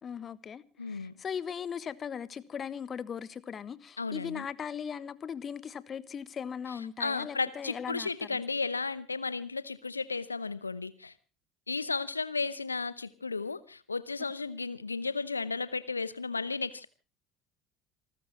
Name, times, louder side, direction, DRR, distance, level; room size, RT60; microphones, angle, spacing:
voice 1, 0.0-8.4, left 7 dB, 35° left, 1.3 m, -39 dB
voice 2, 0.8-1.1 4.0-4.5 6.7-11.1 11.7-16.9, left 4 dB, 85° left, 0.8 m, -34 dB
28.0 x 14.5 x 3.1 m
figure-of-eight pair, 60°, 0 cm